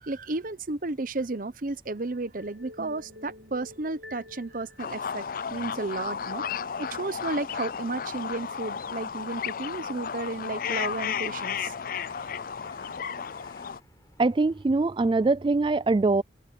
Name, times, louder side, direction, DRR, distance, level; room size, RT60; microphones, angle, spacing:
voice 1, 0.0-5.2 5.5-6.4 6.8-11.7, right 2 dB, 50° right, 0.8 m, -33 dB
sound 1, 2.4-5.7, left 1 dB, 70° right, 2.1 m, -48 dB
sound 2, 4.8-13.8, left 7 dB, 50° left, 0.5 m, -33 dB
Crow, 9.2-14.7, left 2 dB, 20° left, 6.9 m, -60 dB
voice 2, 14.2-16.2, right 3 dB, 25° right, 0.4 m, -23 dB
head